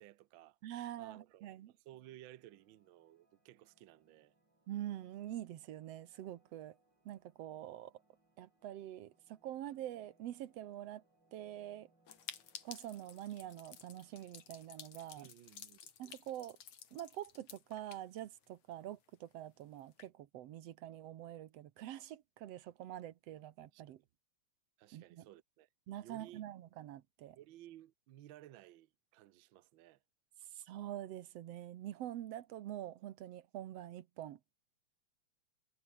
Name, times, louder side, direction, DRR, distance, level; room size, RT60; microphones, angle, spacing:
voice 1, 0.0-0.6 1.0-4.3 15.2-15.9 23.7-24.1 24.8-25.7 26.0-26.4 27.4-30.0, right 13 dB, 85° right, 1.1 m, -57 dB
voice 2, 0.6-1.7 4.7-6.8 7.1-7.9 8.4-11.0 11.3-11.9 12.6-15.3 16.0-16.6 16.9-24.0 24.9-25.3 25.9-27.4 30.5-34.4, right 12 dB, 65° right, 2.0 m, -46 dB
sound 1, 2.2-14.9, right 2 dB, 35° right, 8.7 m, -76 dB
sound 2, 12.1-18.7 19.0-19.1 19.3-19.4 19.8-20.1, left 8 dB, 70° left, 3.6 m, -53 dB
omnidirectional pair, 3.3 m